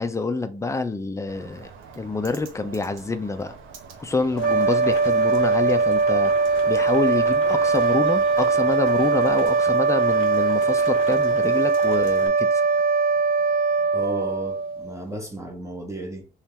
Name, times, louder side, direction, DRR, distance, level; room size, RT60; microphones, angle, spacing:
voice 1, 0.0-1.7 2.0-3.5 4.0-6.3 6.7-12.6, left 3 dB, 15° left, 0.5 m, -27 dB
Bird, 1.3-9.5, right 5 dB, 85° right, 0.8 m, -46 dB
sound 1, 4.3-15.0, right 4 dB, 50° right, 0.4 m, -21 dB
Rain, 4.4-12.3, left 6 dB, 85° left, 0.8 m, -40 dB
voice 2, 13.9-16.3, right 1 dB, 15° right, 0.9 m, -34 dB
3.2 x 2.9 x 3.6 m
cardioid pair, 90°, 20 cm